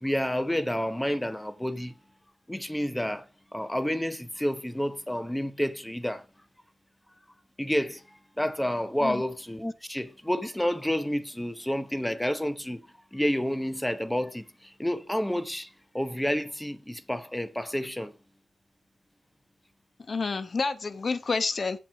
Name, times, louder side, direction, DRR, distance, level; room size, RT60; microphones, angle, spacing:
voice 1, 0.0-2.0 2.5-3.3 3.5-6.3 7.6-12.9 13.1-18.1, equal, 5° left, 0.8 m, -30 dB
voice 2, 20.1-21.8, left 4 dB, 45° left, 1.0 m, -29 dB
7.6 x 7.4 x 5.0 m
wide cardioid pair, 100°, 0 cm